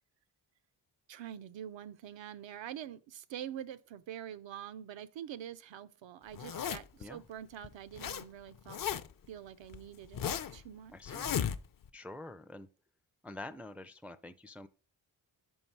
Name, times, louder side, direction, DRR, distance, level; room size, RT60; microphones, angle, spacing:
voice 1, 1.1-8.8 9.3-10.2 10.5-11.2, right 10 dB, 75° right, 0.6 m, -45 dB
Zipper (clothing), 6.3-7.0 7.6-8.2 8.5-9.2 9.7-10.6 11.1-11.9, left 9 dB, 50° left, 0.6 m, -35 dB
voice 2, 10.9-11.3 11.9-12.7 13.2-14.7, left 2 dB, 5° right, 0.4 m, -46 dB
5.5 x 5.3 x 4.5 m
cardioid pair, 75°, 45 cm